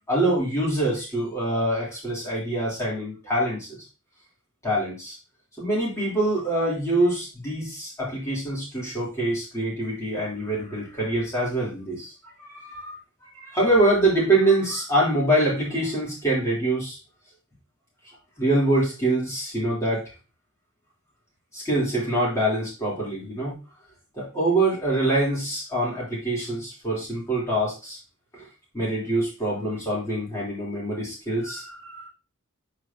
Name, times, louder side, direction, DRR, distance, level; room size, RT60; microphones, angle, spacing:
voice 1, 0.1-3.8 4.6-5.2 5.6-17.0 18.4-20.1 21.5-23.6 24.1-28.0 28.3-28.4 28.7-32.1, right 1 dB, 15° left, -7 dB, 3.5 m, -25 dB
8.9 x 5.0 x 2.9 m, 0.31 s
head